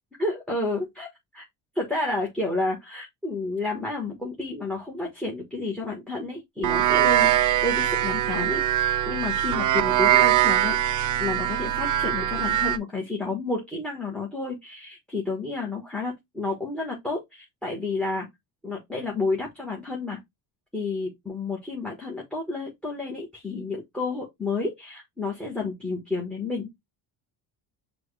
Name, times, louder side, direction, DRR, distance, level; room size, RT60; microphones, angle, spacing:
voice 1, 0.2-1.1 1.3-1.4 1.7-8.6 9.1-18.3 18.6-20.2 20.7-26.7, left 3 dB, ahead, 1.3 m, -30 dB
sound 1, 6.6-12.8, right 12 dB, 45° right, 0.4 m, -22 dB
6.0 x 2.4 x 3.3 m
cardioid pair, 115°, 45 cm